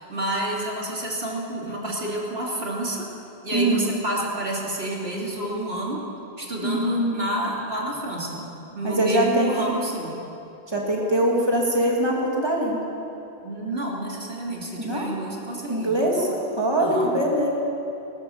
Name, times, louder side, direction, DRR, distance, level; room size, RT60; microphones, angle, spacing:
voice 1, 0.0-3.1 3.4-6.1 6.4-10.2 13.4-16.3 16.8-17.1, right 1 dB, 80° right, -3 dB, 3.3 m, -29 dB
voice 2, 3.5-3.9 6.6-7.3 8.8-9.5 10.7-12.8 14.8-15.1 15.7-16.3 16.6-17.5, right 1 dB, 25° right, -2 dB, 3.2 m, -22 dB
20.0 x 19.5 x 7.3 m, 2.8 s
omnidirectional pair, 1.0 m